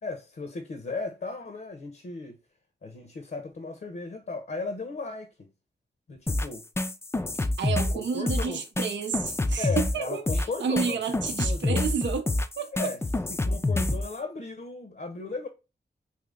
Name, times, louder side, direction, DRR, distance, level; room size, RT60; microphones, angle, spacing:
voice 1, 0.0-2.4 2.8-5.5 6.1-6.7 7.9-8.6 9.6-11.9 12.7-13.0 13.3-15.5, left 3 dB, 55° left, 0.7 m, -36 dB
sound 1, 6.3-14.1, left 2 dB, 15° left, 0.3 m, -27 dB
voice 2, 7.4-12.3 12.6-12.7, right 6 dB, 90° right, 0.6 m, -31 dB
2.9 x 2.7 x 3.5 m
cardioid pair, 50°, 18 cm